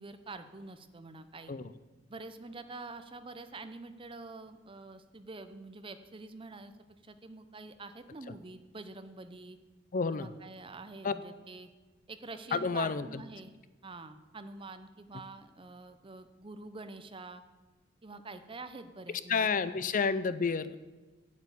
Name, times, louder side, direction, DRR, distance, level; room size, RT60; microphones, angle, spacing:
voice 1, 0.0-1.5 2.1-6.7 7.0-9.6 10.1-11.7 12.1-13.5 13.8-17.4 18.0-19.5 19.8-19.9, right 3 dB, 25° right, 10 dB, 0.7 m, -46 dB
voice 2, 9.9-10.3 11.0-11.1 12.5-13.2 19.3-20.8, left 5 dB, 40° left, 14 dB, 0.5 m, -30 dB
9.4 x 8.3 x 8.3 m, 1.2 s
head